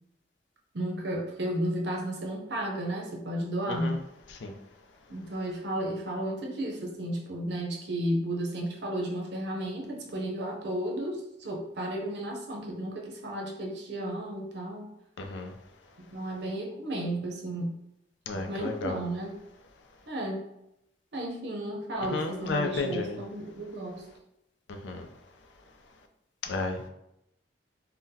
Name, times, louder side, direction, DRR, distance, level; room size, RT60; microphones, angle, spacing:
voice 1, 0.7-4.0 5.1-14.9 16.0-17.7 18.3-19.3 20.1-20.4 21.1-24.1, right 1 dB, 60° right, 0 dB, 0.6 m, -33 dB
voice 2, 15.2-15.5 18.3-19.0 22.1-23.1 24.8-25.1 26.5-26.9, left 3 dB, 75° left, 4 dB, 0.4 m, -32 dB
3.7 x 2.1 x 2.7 m, 0.83 s
head